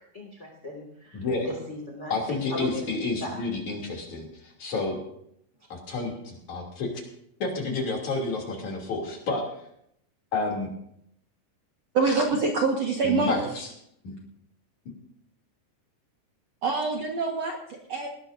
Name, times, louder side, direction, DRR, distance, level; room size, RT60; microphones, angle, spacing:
voice 1, 0.1-2.2 2.5-2.9 3.2-3.4, left 1 dB, 20° left, -2 dB, 2.0 m, -37 dB
voice 2, 1.1-1.5 2.1-5.0 5.7-6.9 7.4-9.5 10.3-10.7 13.0-13.7 14.0-14.1, left 3 dB, 50° left, 0 dB, 4.1 m, -30 dB
voice 3, 11.9-13.5 16.6-18.1, right 4 dB, 55° right, 0 dB, 2.0 m, -25 dB
19.5 x 18.5 x 2.7 m, 0.72 s
omnidirectional pair, 4.7 m